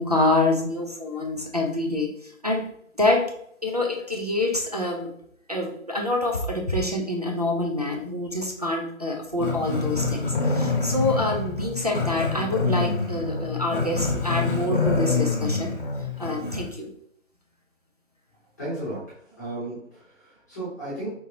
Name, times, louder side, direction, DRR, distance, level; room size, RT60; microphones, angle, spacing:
voice 1, 0.0-2.7 3.0-3.3 3.6-5.1 5.5-15.7 16.2-16.9, left 2 dB, 30° right, -1 dB, 0.5 m, -26 dB
Growling, 9.4-16.7, left 3 dB, 35° left, 1.0 m, -26 dB
voice 2, 18.6-19.0 19.4-21.1, right 1 dB, 15° left, -11 dB, 1.1 m, -34 dB
5.1 x 2.9 x 2.7 m, 0.68 s
figure-of-eight pair, 170°, 40 cm